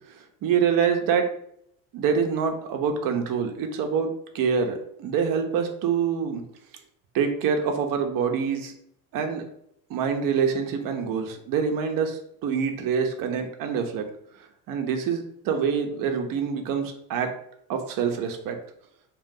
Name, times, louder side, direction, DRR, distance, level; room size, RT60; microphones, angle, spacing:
voice 1, 0.1-1.3 1.9-6.4 7.1-8.7 9.1-9.4 9.9-14.0 14.4-17.3 17.7-18.6, right 6 dB, 50° right, 5 dB, 0.8 m, -26 dB
2.6 x 2.4 x 3.7 m, 0.71 s
supercardioid pair, 95°, 43 cm